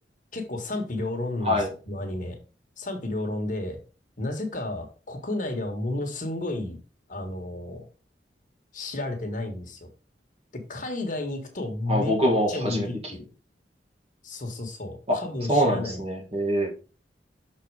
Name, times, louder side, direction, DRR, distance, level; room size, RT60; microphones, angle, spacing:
voice 1, 0.3-2.4 2.8-3.8 4.2-6.8 7.1-7.8 8.7-9.9 10.5-12.1 12.5-13.3 14.2-16.0, left 2 dB, 50° left, 4 dB, 1.5 m, -32 dB
voice 2, 11.9-12.9 15.1-15.2 15.5-16.7, equal, 35° right, 0 dB, 2.2 m, -24 dB
6.4 x 4.2 x 4.7 m, 0.34 s
head